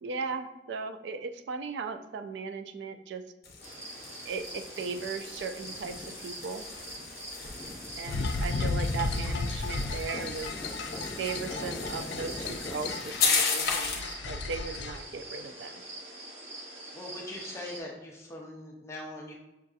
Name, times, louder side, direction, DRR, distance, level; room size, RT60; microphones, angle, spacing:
voice 1, 0.0-3.2 4.3-6.6 8.0-10.5 11.2-15.8, right 4 dB, 80° right, 8 dB, 0.3 m, -37 dB
sound 1, 3.4-14.1, left 4 dB, 55° left, 0.7 m, -35 dB
sound 2, 3.6-17.8, right 1 dB, 35° right, 0.8 m, -44 dB
sound 3, 8.1-15.0, left 3 dB, 80° left, 0.3 m, -34 dB
voice 2, 16.9-19.3, left 1 dB, 15° left, -2 dB, 0.5 m, -41 dB
6.3 x 2.6 x 2.4 m, 1.0 s
head